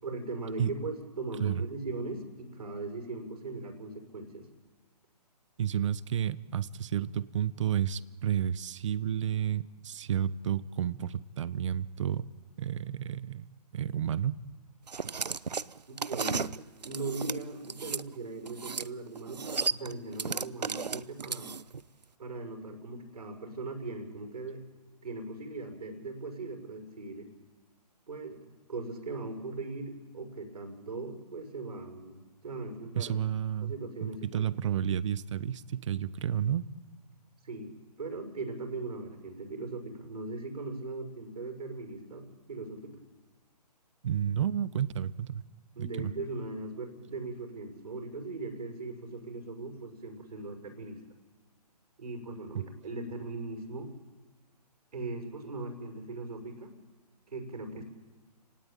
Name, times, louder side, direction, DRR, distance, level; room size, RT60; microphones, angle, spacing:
voice 1, 0.0-4.5 15.9-21.5 22.2-24.6 25.0-27.3 28.1-33.2 33.6-34.5 37.4-43.0 45.8-51.0 52.0-53.9 54.9-56.7 57.3-57.8, right 3 dB, 70° right, 5 dB, 6.1 m, -39 dB
voice 2, 5.6-12.2 12.6-14.4 32.9-33.7 34.0-36.6 44.0-45.4 45.8-46.1, right 9 dB, 45° right, 17 dB, 1.0 m, -31 dB
sound 1, 14.9-18.0 18.5-18.9 19.2-21.8, right 5 dB, 85° right, 0.8 m, -34 dB
29.5 x 18.0 x 9.0 m, 1.4 s
figure-of-eight pair, 140°, 21 cm